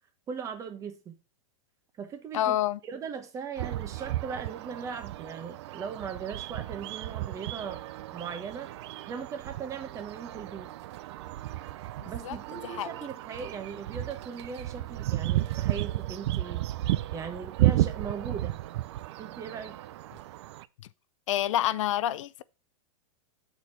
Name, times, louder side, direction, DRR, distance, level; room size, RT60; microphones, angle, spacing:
voice 1, 0.3-1.2 2.0-2.6 2.8-7.8 8.1-8.7 9.0-10.7 12.1-16.7 17.1-18.6 19.2-19.8, right 6 dB, 20° right, 0.9 m, -39 dB
voice 2, 2.3-2.8 12.0-12.4 12.6-12.9 21.3-22.4, left 12 dB, 65° left, 0.4 m, -28 dB
sound 1, 3.6-20.7, right 15 dB, 55° right, 0.4 m, -33 dB
7.0 x 4.5 x 5.7 m
supercardioid pair, 155°, 18 cm